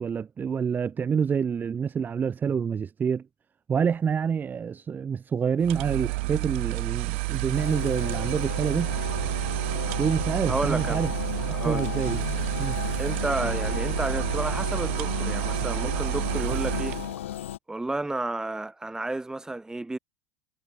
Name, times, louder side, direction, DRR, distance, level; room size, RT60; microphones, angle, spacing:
voice 1, 0.0-3.2 3.7-8.9 10.0-11.1 11.6-12.2 12.6-12.8, right 7 dB, 25° right, 1.2 m, -27 dB
sound 1, 5.6-17.2, right 24 dB, 70° right, 4.1 m, -29 dB
sound 2, 7.5-17.6, left 12 dB, 80° left, 1.5 m, -34 dB
voice 2, 10.5-11.1 11.5-11.9 13.0-17.0 17.7-20.0, right 2 dB, 10° right, 4.5 m, -31 dB
hypercardioid pair, 90°, 7 cm